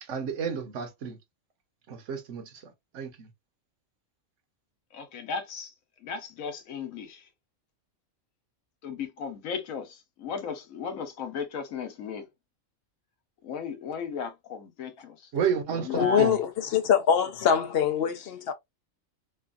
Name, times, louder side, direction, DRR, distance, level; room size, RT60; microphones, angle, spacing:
voice 1, 0.1-1.2 1.9-3.3 15.3-16.4, right 7 dB, 70° right, 1.1 m, -31 dB
voice 2, 4.9-5.7 6.0-7.3 8.8-12.3 13.4-15.3 15.7-16.4 18.0-18.1, left 5 dB, 90° left, 1.2 m, -35 dB
voice 3, 15.9-18.5, left 8 dB, 65° left, 0.7 m, -24 dB
3.1 x 2.3 x 2.4 m
omnidirectional pair, 1.4 m